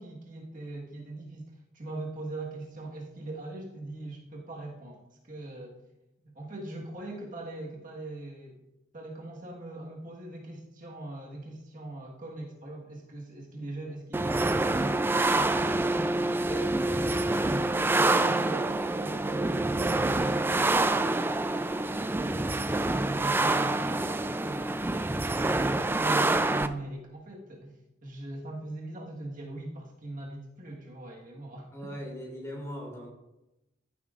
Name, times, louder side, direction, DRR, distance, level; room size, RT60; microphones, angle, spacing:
voice 1, 0.0-5.8 6.2-8.6 8.9-14.9 15.3-16.0 16.4-21.2 22.7-24.8 25.3-31.7, right 2 dB, 50° right, -1 dB, 1.5 m, -41 dB
sound 1, 14.1-26.7, right 2 dB, 10° right, 0.3 m, -26 dB
voice 2, 19.3-19.7 31.7-33.1, equal, 15° left, -2 dB, 3.1 m, -39 dB
14.5 x 7.9 x 2.5 m, 0.93 s
head